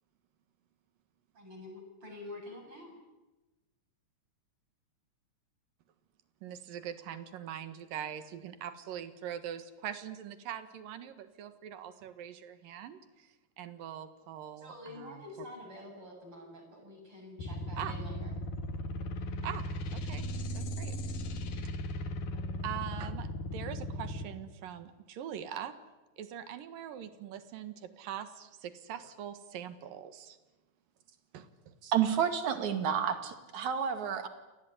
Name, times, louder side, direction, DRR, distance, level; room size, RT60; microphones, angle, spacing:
voice 1, 1.3-2.9 12.6-12.7 14.6-18.3, left 2 dB, 40° right, 2 dB, 8.3 m, -47 dB
voice 2, 6.4-15.2 17.8-18.0 19.4-19.7 19.9-20.3 20.5-20.9 22.6-25.7 26.2-30.4 31.3-31.7, right 10 dB, 90° right, 11 dB, 3.3 m, -42 dB
sound 1, 17.4-24.2, equal, 85° left, 3.9 m, -37 dB
voice 3, 31.8-34.3, right 8 dB, 60° right, 8 dB, 3.4 m, -30 dB
28.0 x 19.5 x 9.8 m, 1.1 s
omnidirectional pair, 3.8 m